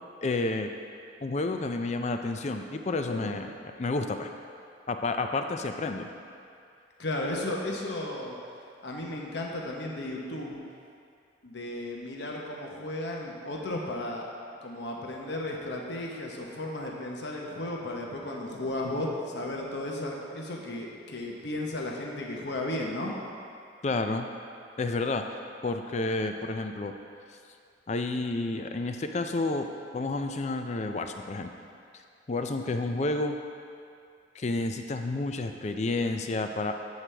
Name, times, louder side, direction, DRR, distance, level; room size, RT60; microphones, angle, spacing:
voice 1, 0.2-0.7 1.2-3.5 3.8-4.3 4.9-6.1 23.8-24.3 24.8-25.2 25.6-27.0 27.9-29.7 29.9-31.5 32.3-33.4 34.4-36.8, left 2 dB, 35° left, 6 dB, 0.4 m, -30 dB
voice 2, 7.0-8.3 8.8-10.6 11.4-14.3 14.6-23.1, left 1 dB, 65° left, -1 dB, 1.0 m, -34 dB
7.9 x 7.3 x 3.4 m, 2.4 s
head